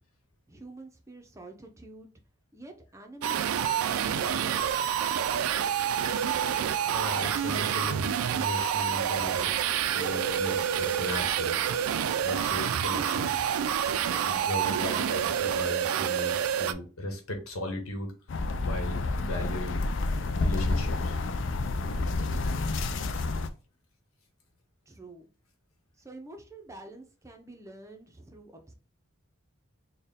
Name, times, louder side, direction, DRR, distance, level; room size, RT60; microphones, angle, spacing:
voice 1, 0.5-2.1 2.5-4.7 24.9-25.3 26.0-28.7, right 2 dB, 15° right, 4 dB, 0.5 m, -47 dB
sound 1, 3.2-16.7, right 9 dB, 85° right, 0.3 m, -28 dB
voice 2, 6.8-9.7 9.9-11.6 12.2-13.3 14.3-18.1 18.6-19.8 20.3-21.2, left 1 dB, 90° left, 4 dB, 1.1 m, -37 dB
sound 2, 18.3-23.5, left 2 dB, 60° left, 0.4 m, -29 dB
4.3 x 2.2 x 3.5 m, 0.35 s
head